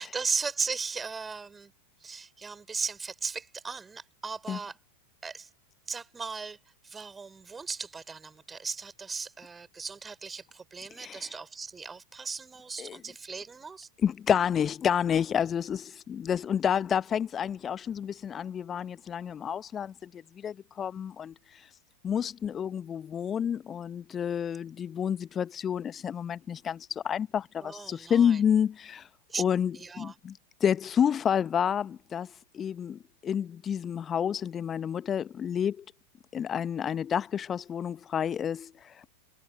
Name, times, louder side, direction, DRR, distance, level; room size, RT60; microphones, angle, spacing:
voice 1, 0.0-1.7 2.0-4.8 5.2-5.5 5.9-6.6 6.8-13.9 27.6-28.4 29.3-29.4 29.7-30.1, right 5 dB, 15° right, 4.5 m, -37 dB
voice 2, 11.0-11.3 12.8-13.0 14.0-21.8 22.0-29.1 29.4-35.8 36.3-39.1, left 8 dB, 25° left, 0.7 m, -29 dB
figure-of-eight pair, 90°, 0 cm